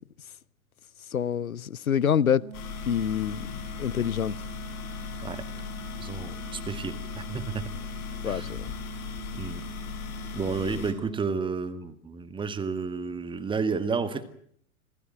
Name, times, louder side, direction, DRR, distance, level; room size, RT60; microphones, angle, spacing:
voice 1, 1.1-2.4 2.9-4.3 8.2-8.6, left 8 dB, 75° left, 0.9 m, -26 dB
sound 1, 2.4-11.3, right 14 dB, 35° right, 1.3 m, -43 dB
sound 2, 2.5-10.9, left 10 dB, 35° left, 6.8 m, -38 dB
voice 2, 6.0-7.6 8.3-8.5 9.3-9.7 10.3-14.2, right 5 dB, 10° right, 1.9 m, -31 dB
27.0 x 18.5 x 7.6 m
figure-of-eight pair, 95°, 43 cm